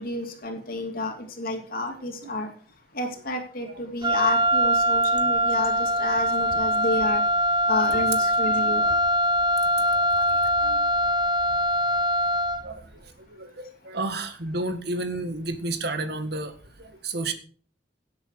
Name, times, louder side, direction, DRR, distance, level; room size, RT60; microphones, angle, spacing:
voice 1, 0.0-2.5 2.9-7.2 7.7-8.8, left 2 dB, 55° left, 3 dB, 3.0 m, -30 dB
Wind instrument woodwind instrument, 4.0-12.7, equal, 25° right, 0.6 m, -23 dB
voice 2, 9.8-10.8 12.6-17.3, right 2 dB, 65° right, 8 dB, 1.9 m, -32 dB
17.5 x 8.2 x 4.8 m, 0.43 s
head